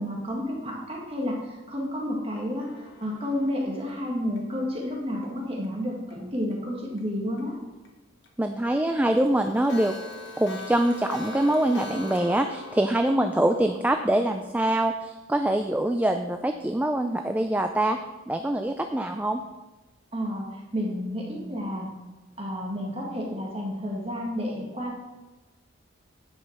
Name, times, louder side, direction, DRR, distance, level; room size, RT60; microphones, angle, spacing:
voice 1, 0.0-7.5 13.1-13.2 20.1-21.9 22.4-25.0, equal, 30° right, -2 dB, 1.7 m, -31 dB
Clock, 2.6-5.7 6.1-6.2 6.5-6.6 7.0-7.1 7.4-7.5 7.8-7.9 8.2-8.3 8.6-8.7 9.1-14.9, left 2 dB, 65° left, 1.7 m, -43 dB
voice 2, 8.4-9.9 10.4-18.0 18.3-19.4 21.5-21.6, right 1 dB, 10° right, 6 dB, 0.3 m, -24 dB
10.5 x 5.4 x 6.5 m, 1.2 s
head